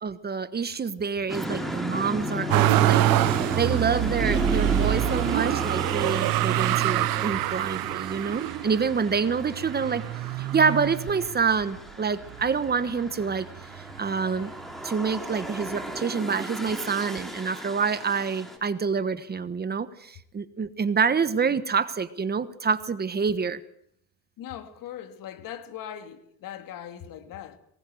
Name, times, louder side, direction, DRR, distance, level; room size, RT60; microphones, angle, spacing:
voice 1, 0.0-10.0 10.5-13.5 14.0-14.5 14.8-23.6, right 5 dB, 30° right, 1.3 m, -27 dB
sound 1, 1.3-18.6, equal, ahead, 4.4 m, -34 dB
Motor vehicle (road), 2.5-11.6 12.2-13.0 13.3-14.4 15.4-15.5, right 16 dB, 80° right, 0.8 m, -26 dB
voice 2, 24.4-27.6, left 10 dB, 70° left, 2.5 m, -40 dB
23.0 x 20.0 x 7.9 m
cardioid pair, 125°, 35 cm